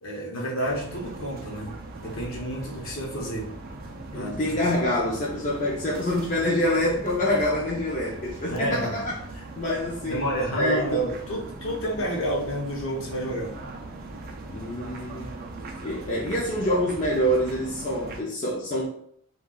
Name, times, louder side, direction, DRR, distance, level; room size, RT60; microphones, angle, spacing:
voice 1, 0.0-3.5 4.1-4.7 8.5-9.1 10.1-13.5, equal, 60° left, -2 dB, 0.8 m, -30 dB
sound 1, 0.6-18.2, right 2 dB, 40° right, 0.4 m, -40 dB
voice 2, 4.1-10.2 10.6-11.0 14.5-15.3 15.8-18.9, left 1 dB, 35° left, -5 dB, 0.5 m, -26 dB
2.4 x 2.3 x 3.7 m, 0.64 s
head